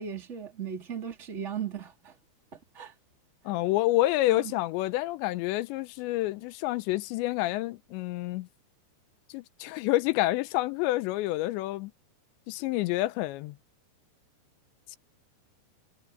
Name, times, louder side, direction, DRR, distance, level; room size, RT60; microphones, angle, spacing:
voice 1, 0.0-2.1 2.5-2.9 4.3-4.5, right 8 dB, 15° right, 3.4 m, -37 dB
voice 2, 3.5-8.5 9.3-11.9 12.5-13.6, left 17 dB, 85° left, 2.9 m, -28 dB
omnidirectional pair, 5.3 m